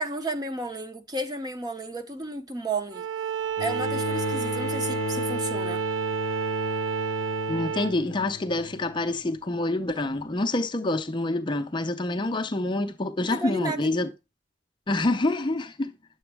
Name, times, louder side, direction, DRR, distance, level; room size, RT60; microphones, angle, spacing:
voice 1, 0.0-3.1 3.6-5.8 13.3-13.9, right 2 dB, 20° right, 0.7 m, -32 dB
Bowed string instrument, 2.9-8.0, right 9 dB, 85° right, 0.3 m, -30 dB
Bowed string instrument 2, 3.6-9.0 10.1-10.2, left 4 dB, 85° left, 0.4 m, -34 dB
voice 2, 7.5-14.1 14.9-15.9, left 2 dB, 25° left, 0.5 m, -27 dB
9.6 x 6.9 x 3.4 m
head